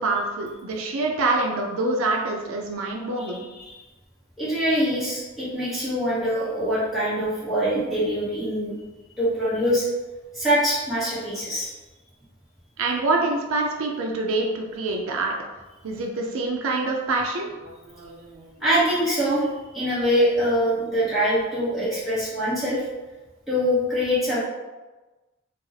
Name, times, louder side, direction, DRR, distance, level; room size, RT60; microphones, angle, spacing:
voice 1, 0.0-3.5 12.8-15.3 15.8-18.5, right 2 dB, 75° right, 1 dB, 0.4 m, -26 dB
voice 2, 4.4-8.7 9.2-9.8 10.3-11.7 18.6-19.5 19.7-22.9 23.5-24.4, equal, ahead, -11 dB, 1.1 m, -24 dB
2.6 x 2.4 x 3.9 m, 1.2 s
head